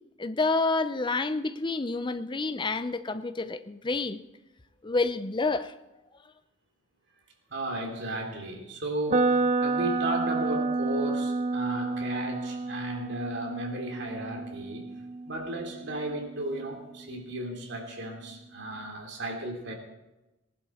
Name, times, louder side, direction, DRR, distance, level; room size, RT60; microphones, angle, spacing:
voice 1, 0.2-4.2 4.8-5.7, left 3 dB, 25° left, 0.6 m, -28 dB
voice 2, 7.5-14.9 15.2-19.7, right 1 dB, 60° right, 2.9 m, -35 dB
sound 1, 9.1-17.0, right 3 dB, 35° right, 0.5 m, -30 dB
19.0 x 11.5 x 4.3 m
head